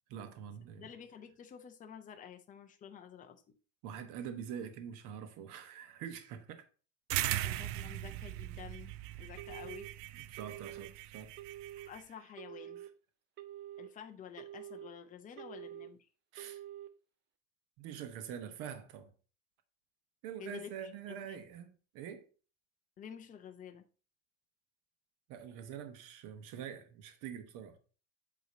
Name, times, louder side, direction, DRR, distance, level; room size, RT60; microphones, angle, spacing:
voice 1, 0.1-0.9 3.8-6.6 10.1-11.3 16.3-16.6 17.8-19.1 20.2-22.3 25.3-27.8, right 8 dB, 55° right, 1.1 m, -45 dB
voice 2, 0.8-3.4 7.3-8.9 9.2-9.9 11.8-12.8 13.8-16.1 20.4-21.5 23.0-23.8, left 8 dB, 20° left, 0.7 m, -50 dB
sound 1, 7.1-12.0, right 15 dB, 75° right, 0.5 m, -39 dB
Telephone, 9.4-9.9 10.4-10.9 11.4-11.9 12.4-12.9 13.4-13.9 14.4-14.9 15.4-15.9 16.4-16.9, right 12 dB, 30° right, 0.6 m, -47 dB
8.4 x 3.0 x 5.1 m
cardioid pair, 160°, 37 cm